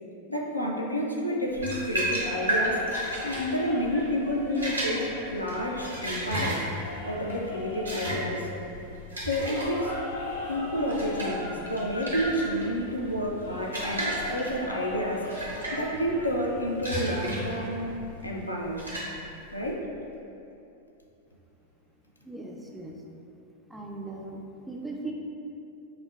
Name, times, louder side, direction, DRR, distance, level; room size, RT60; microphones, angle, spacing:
voice 1, 0.3-2.8 3.2-6.6 7.0-8.5 9.2-10.0 10.5-15.4 15.7-17.9 18.2-18.9 19.5-19.9, equal, 85° left, -1 dB, 0.4 m, -30 dB
sound 1, 1.5-19.7, right 1 dB, 80° right, 0.7 m, -34 dB
sound 2, 2.2-17.9, left 1 dB, 65° left, 0.9 m, -39 dB
voice 2, 22.2-22.9 23.7-25.1, right 2 dB, 5° right, -1 dB, 0.3 m, -38 dB
5.6 x 2.1 x 2.3 m, 2.7 s
figure-of-eight pair, 90°, 0 cm